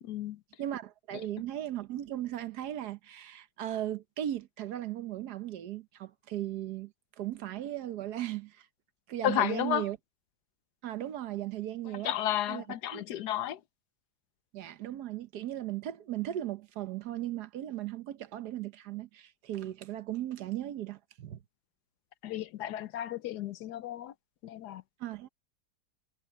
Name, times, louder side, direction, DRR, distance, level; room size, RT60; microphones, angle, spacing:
voice 1, 0.0-0.4 9.2-9.9 11.9-13.6 22.2-24.1 24.4-24.8, left 12 dB, 75° left, 1.2 m, -32 dB
voice 2, 0.6-8.7 9.1-10.0 10.8-12.1 12.5-12.6 12.9-13.0 14.5-21.4 25.0-25.3, right 12 dB, 70° right, 1.3 m, -37 dB
omnidirectional pair, 1.9 m